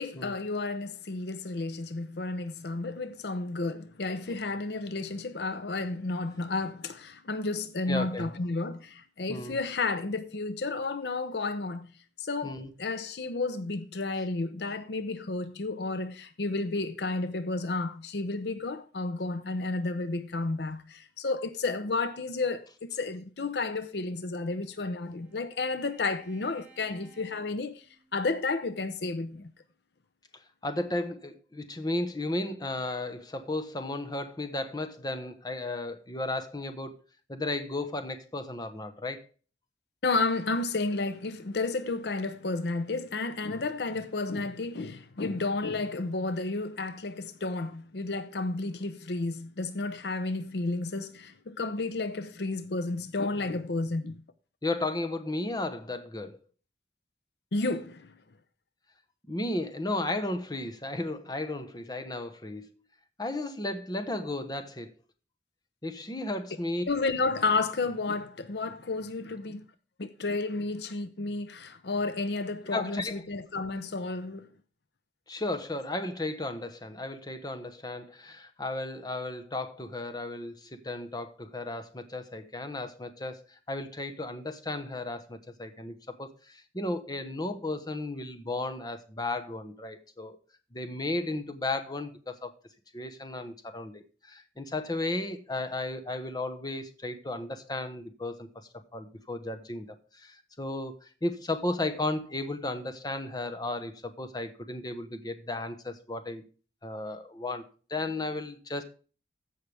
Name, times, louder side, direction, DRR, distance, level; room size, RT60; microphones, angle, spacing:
voice 1, 0.0-11.9 12.2-27.8 28.1-29.5 40.0-54.2 57.5-58.1 66.9-69.6 70.0-74.5, left 3 dB, 65° left, 0.7 m, -32 dB
voice 2, 7.9-8.3 9.3-9.6 12.4-12.7 30.6-37.0 37.3-39.2 54.6-56.4 59.3-62.7 63.2-64.9 65.8-66.8 72.7-73.2 75.3-90.4 90.7-92.5 92.9-98.5 98.9-106.4 106.8-107.6 107.9-108.8, left 2 dB, 20° left, 1.0 m, -34 dB
Bowed string instrument, 23.9-28.4, right 4 dB, 5° right, 3.4 m, -60 dB
15.0 x 5.6 x 3.4 m
head